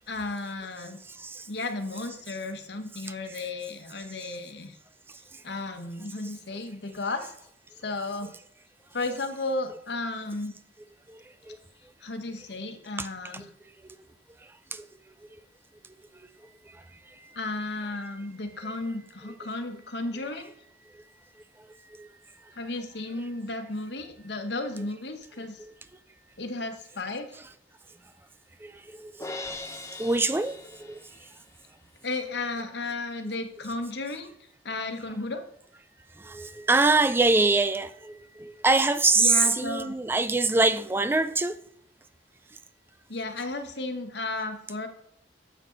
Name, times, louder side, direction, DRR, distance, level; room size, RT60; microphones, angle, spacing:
voice 1, 0.1-1.0 1.5-4.8 5.4-7.3 7.8-8.3 8.9-10.5 12.0-13.4 17.3-20.5 22.5-25.6 26.4-27.3 32.0-34.3 34.6-35.4 39.2-39.9 43.1-44.9, left 2 dB, 65° left, 1.2 m, -34 dB
voice 2, 1.1-1.5 3.1-3.5 11.1-11.6 13.0-13.1 13.3-13.5 14.7-14.9 16.7-16.8 22.0-22.1 25.6-25.7 28.6-29.1 30.0-31.0 36.2-41.6, right 3 dB, 15° right, 0.3 m, -25 dB
Crash cymbal, 29.2-31.5, left 2 dB, 15° left, 0.8 m, -40 dB
10.0 x 7.3 x 3.9 m
head